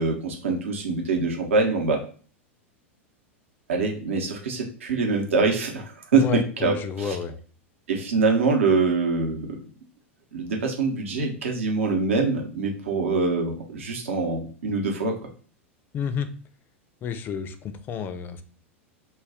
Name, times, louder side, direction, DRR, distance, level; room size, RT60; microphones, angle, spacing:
voice 1, 0.0-2.0 3.7-7.2 7.9-9.6 10.3-15.1, right 4 dB, 75° right, 1 dB, 0.8 m, -24 dB
voice 2, 6.1-7.3 15.9-16.3 17.0-18.4, left 7 dB, 30° left, 10 dB, 0.4 m, -30 dB
2.3 x 2.1 x 3.5 m, 0.41 s
figure-of-eight pair, 90°, 7 cm